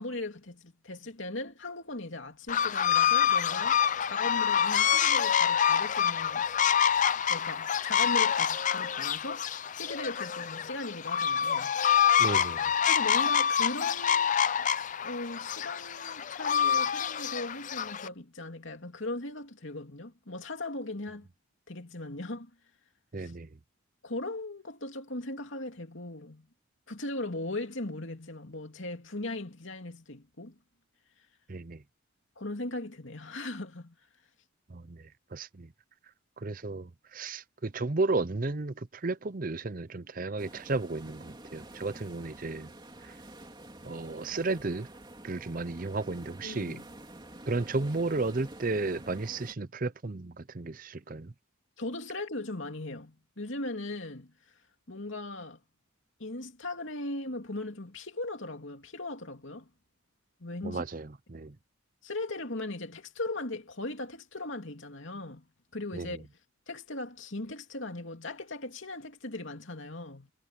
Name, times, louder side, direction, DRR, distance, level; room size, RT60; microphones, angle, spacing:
voice 1, 0.0-6.6 7.3-11.8 12.9-14.7 15.0-21.3 21.7-22.5 23.2-23.3 24.0-26.5 26.9-30.5 32.4-34.0 46.4-46.8 51.8-54.3 54.9-55.6 56.2-59.7 60.4-60.8 62.0-65.5 65.7-66.3 66.7-70.3, left 2 dB, 60° left, 2.8 m, -38 dB
sound 1, 2.5-18.1, left 8 dB, 35° left, 0.5 m, -27 dB
voice 2, 12.2-12.6 23.1-23.5 31.5-31.8 34.7-35.0 35.3-35.7 36.4-42.7 43.0-43.1 43.8-44.9 45.2-46.8 47.5-51.3 60.6-61.5 65.9-66.1, right 3 dB, 40° right, 0.7 m, -33 dB
sound 2, 40.4-49.5, right 1 dB, 20° right, 3.2 m, -48 dB
head